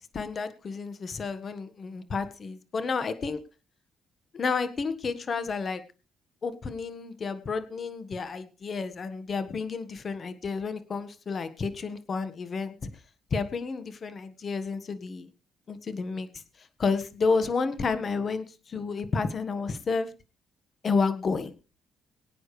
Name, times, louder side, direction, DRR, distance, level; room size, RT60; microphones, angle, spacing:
voice 1, 0.1-3.4 4.3-5.8 6.4-12.9 13.3-15.3 15.7-20.1 20.8-21.5, left 4 dB, 45° left, 12 dB, 1.5 m, -31 dB
23.0 x 8.9 x 3.3 m, 0.33 s
cardioid pair, 90°, 0 cm